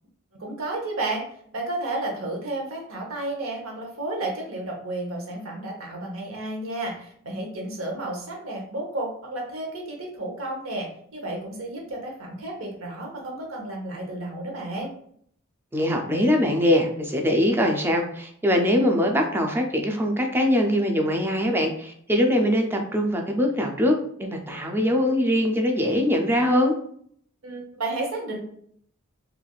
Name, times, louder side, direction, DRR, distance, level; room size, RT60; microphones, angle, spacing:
voice 1, 0.4-1.2 1.5-14.9 27.4-28.4, right 2 dB, 75° right, 0 dB, 0.8 m, -32 dB
voice 2, 15.7-26.7, left 1 dB, 10° right, 2 dB, 0.4 m, -22 dB
3.2 x 2.4 x 2.3 m, 0.64 s
head